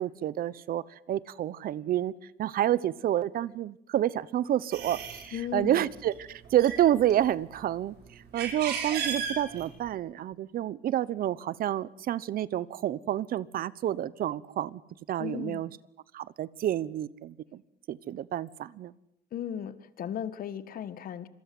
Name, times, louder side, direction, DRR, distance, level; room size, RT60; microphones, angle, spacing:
voice 1, 0.0-2.1 2.4-14.8 15.1-15.7 16.1-17.6 17.9-18.9, right 12 dB, 60° right, 20 dB, 1.0 m, -29 dB
sound 1, 4.7-5.3 6.0-6.2 6.4-7.6 8.1-9.9, right 7 dB, 75° right, 6.7 m, -34 dB
voice 2, 5.3-5.8 15.2-15.6 19.3-21.3, left 9 dB, 60° left, 14 dB, 1.8 m, -36 dB
27.0 x 22.5 x 7.9 m, 0.78 s
cardioid pair, 110°, 17 cm